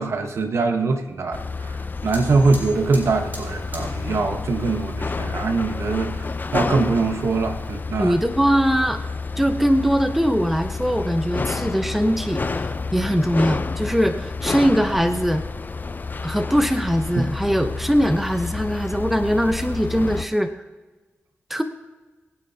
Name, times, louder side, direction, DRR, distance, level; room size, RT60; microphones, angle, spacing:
voice 1, 0.0-1.8 2.0-8.2 17.2-17.3, right 3 dB, 75° right, 5 dB, 1.3 m, -23 dB
sound 1, 1.3-20.3, left 4 dB, 40° left, 0.6 m, -29 dB
Fire, 2.1-7.8, right 1 dB, 40° right, 4.5 m, -45 dB
voice 2, 8.0-9.0 9.4-15.4 16.2-20.5 21.5-21.6, equal, 5° right, 7 dB, 1.0 m, -21 dB
22.5 x 9.2 x 2.9 m, 1.3 s
cardioid pair, 55°, 5 cm